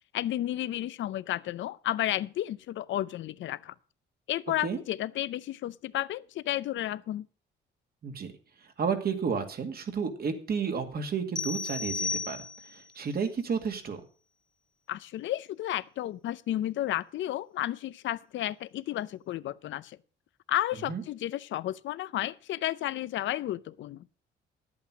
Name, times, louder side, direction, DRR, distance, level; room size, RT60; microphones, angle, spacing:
voice 1, 0.1-3.7 4.3-7.3 14.9-20.0 20.5-24.1, left 13 dB, 70° left, 0.6 m, -32 dB
voice 2, 8.8-12.4 12.7-14.0 20.9-21.0, right 6 dB, 50° right, 2.2 m, -31 dB
sound 1, 11.4-12.9, left 4 dB, 20° left, 0.6 m, -34 dB
11.0 x 8.6 x 6.1 m
cardioid pair, 90°, 20 cm